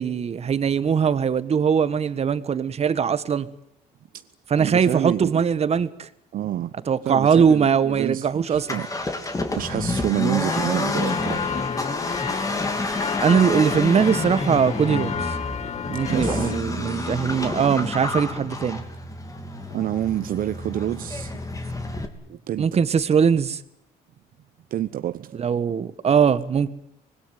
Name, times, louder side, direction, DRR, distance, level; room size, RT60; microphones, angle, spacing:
voice 1, 0.0-3.5 4.5-6.1 6.9-8.8 13.2-15.3 15.9-18.8 22.6-23.6 25.4-26.7, right 7 dB, 40° right, 1.5 m, -21 dB
voice 2, 4.6-5.4 6.3-6.7 7.0-8.9 9.6-11.9 16.1-16.5 19.7-21.4 22.3-22.7 24.7-25.7, right 12 dB, 55° right, 0.9 m, -28 dB
Accelerating revving vroom, 8.5-22.1, left 2 dB, 20° left, 3.2 m, -29 dB
sound 1, 10.5-16.6, left 7 dB, 40° left, 1.1 m, -31 dB
25.5 x 20.5 x 9.5 m
cardioid pair, 110°, 17 cm